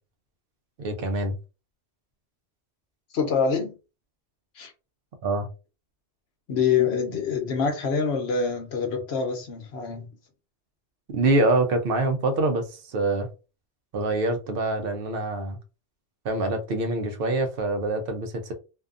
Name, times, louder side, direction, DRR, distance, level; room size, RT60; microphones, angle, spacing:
voice 1, 0.8-1.3 5.2-5.5 11.1-13.3 13.9-15.6 16.2-18.5, right 2 dB, 60° right, 0.8 m, -25 dB
voice 2, 3.1-3.7 4.6-4.7 6.5-10.1, left 6 dB, 65° left, 1.0 m, -25 dB
2.6 x 2.3 x 2.4 m
omnidirectional pair, 1.2 m